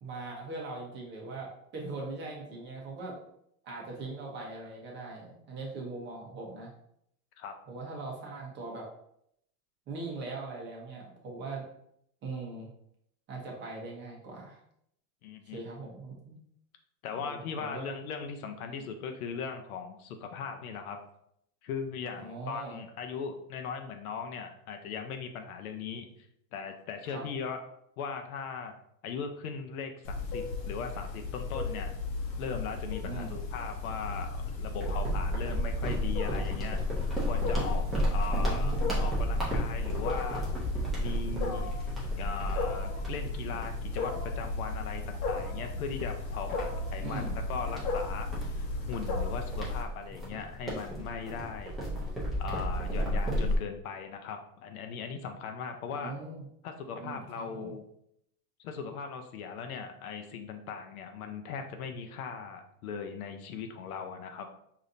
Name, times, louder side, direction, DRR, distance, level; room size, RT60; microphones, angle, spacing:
voice 1, 0.0-3.2 3.6-6.7 7.7-8.9 9.9-11.6 12.2-12.7 13.3-14.6 15.5-16.4 17.2-17.8 18.7-18.9 22.1-22.8 27.1-27.2 33.0-33.4 38.3-38.9 47.0-47.3 55.9-56.5 57.0-57.7, right 3 dB, 25° right, -2 dB, 0.9 m, -41 dB
voice 2, 15.2-15.6 17.0-21.0 21.6-26.1 26.5-27.6 28.0-28.7 29.0-31.9 32.4-36.8 37.3-40.4 41.0-41.7 42.2-51.8 52.4-56.1 56.6-57.8 58.6-64.5, left 6 dB, 60° left, 5 dB, 0.7 m, -39 dB
Wild animals, 30.0-49.8, left 3 dB, 85° left, 1.0 m, -35 dB
sound 1, 34.8-44.7 45.1-45.3 45.9-53.6, equal, ahead, 0.4 m, -33 dB
5.0 x 2.8 x 2.6 m, 0.74 s
hypercardioid pair, 130°, 49 cm